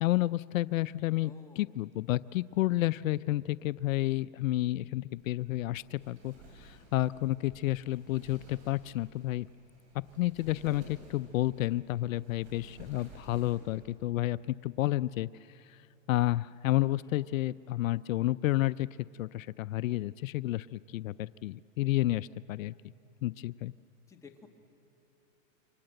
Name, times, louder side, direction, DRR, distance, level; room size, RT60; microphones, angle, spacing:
voice 1, 0.0-9.5 10.2-15.3 15.7-15.8 16.1-18.9 19.2-22.7 23.2-23.7, left 16 dB, 80° left, 17 dB, 0.6 m, -30 dB
voice 2, 1.2-1.8 17.0-17.3 24.1-24.5, left 4 dB, 10° left, 1 dB, 1.8 m, -54 dB
Wind, 5.2-13.8, right 2 dB, 40° right, 7.6 m, -55 dB
29.0 x 25.0 x 7.8 m, 2.8 s
supercardioid pair, 150°, 40 cm